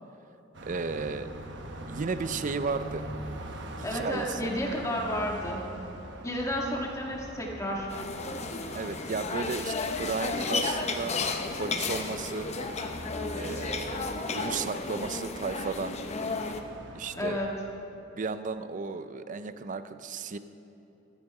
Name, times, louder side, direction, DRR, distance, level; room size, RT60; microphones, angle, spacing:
Car passing by, 0.5-17.8, right 1 dB, 60° right, 1.1 m, -43 dB
voice 1, 0.6-1.3 1.9-3.0 3.8-4.5 8.7-11.1 11.6-12.5 13.3-14.1 14.3-16.0 16.9-17.4 18.1-20.4, right 4 dB, 40° right, 12 dB, 0.5 m, -34 dB
voice 2, 3.8-5.7 6.2-7.9 17.1-17.5, equal, 15° left, -2 dB, 1.7 m, -31 dB
sound 1, 7.9-16.6, left 3 dB, 35° left, 0.7 m, -33 dB
13.5 x 10.0 x 4.9 m, 2.9 s
head